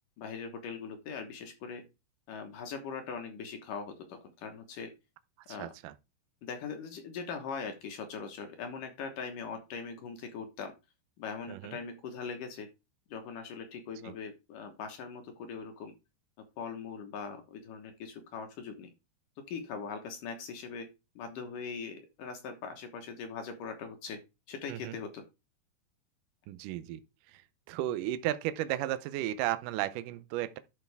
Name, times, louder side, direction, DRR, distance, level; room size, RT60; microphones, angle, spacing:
voice 1, 0.2-1.8 2.3-4.9 5.5-5.7 6.4-10.7 11.2-12.7 13.1-15.9 16.6-18.9 19.5-20.9 21.2-24.2 24.5-25.2, left 5 dB, 65° left, 2.4 m, -41 dB
voice 2, 5.5-5.9 11.5-11.8 14.0-14.1 24.7-25.0 26.5-27.0 27.3-27.4 27.7-30.6, right 14 dB, 90° right, 1.9 m, -34 dB
11.5 x 5.6 x 3.5 m
omnidirectional pair, 4.6 m